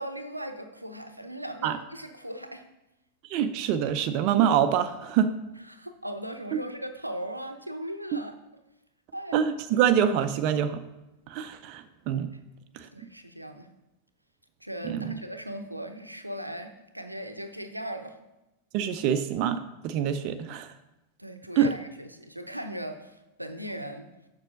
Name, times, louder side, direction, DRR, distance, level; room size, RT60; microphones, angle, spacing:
voice 1, 0.0-2.6 5.6-8.3 9.1-9.4 12.9-13.7 14.6-18.2 21.2-24.1, right 1 dB, 90° right, 7 dB, 0.7 m, -38 dB
voice 2, 3.3-5.3 9.3-10.8 11.3-12.3 12.8-12.9 14.9-15.1 18.7-20.7 21.6-21.7, right 9 dB, 45° right, 9 dB, 0.5 m, -25 dB
7.3 x 6.1 x 5.3 m, 0.94 s
figure-of-eight pair, 90°, 0 cm